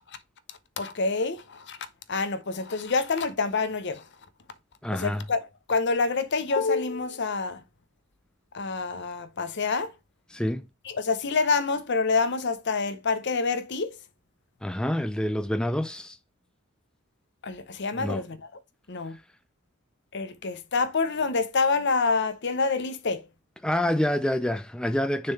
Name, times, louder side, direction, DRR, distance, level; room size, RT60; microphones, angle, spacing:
voice 1, 0.8-1.8 2.1-4.0 4.9-5.4 5.7-7.6 8.5-9.9 10.9-14.0 17.4-18.5 18.9-19.2 20.1-23.3, left 4 dB, 55° left, 0.8 m, -27 dB
voice 2, 4.8-5.2 10.3-10.7 14.6-16.2 18.0-18.2 23.6-25.3, left 1 dB, 5° left, 0.3 m, -27 dB
6.5 x 3.8 x 4.1 m
head